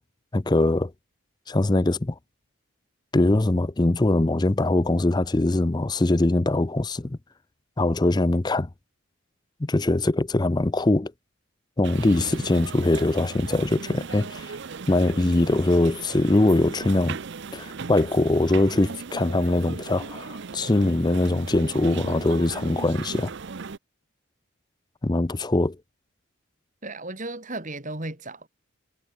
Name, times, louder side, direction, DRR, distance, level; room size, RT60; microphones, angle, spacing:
voice 1, 0.3-0.9 1.5-2.1 3.1-7.2 7.8-8.7 9.6-11.1 11.8-14.5 14.9-17.2 17.5-23.3 25.0-25.8, left 2 dB, 20° left, 0.5 m, -22 dB
sound 1, 11.8-23.8, right 5 dB, 55° right, 0.6 m, -37 dB
voice 2, 26.8-28.5, right 2 dB, 35° right, 3.3 m, -35 dB
head